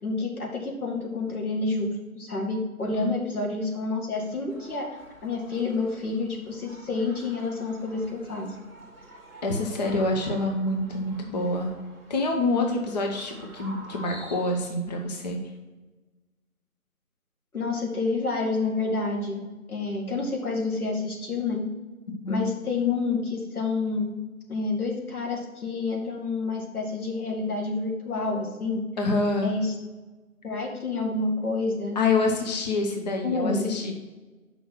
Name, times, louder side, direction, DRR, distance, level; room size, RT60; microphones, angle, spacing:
voice 1, 0.0-4.9 5.2-8.5 17.5-19.4 19.7-21.7 22.3-24.1 24.5-28.8 29.4-29.7 30.4-32.5 33.2-33.7, left 3 dB, 90° left, 0 dB, 2.3 m, -29 dB
sound 1, 4.5-14.7, right 1 dB, 5° left, 1.2 m, -48 dB
voice 2, 9.4-11.7 12.1-15.4 22.2-22.4 29.0-29.5 31.9-33.9, left 2 dB, 30° left, 2 dB, 0.8 m, -26 dB
6.4 x 5.4 x 5.8 m, 1.2 s
figure-of-eight pair, 155°, 43 cm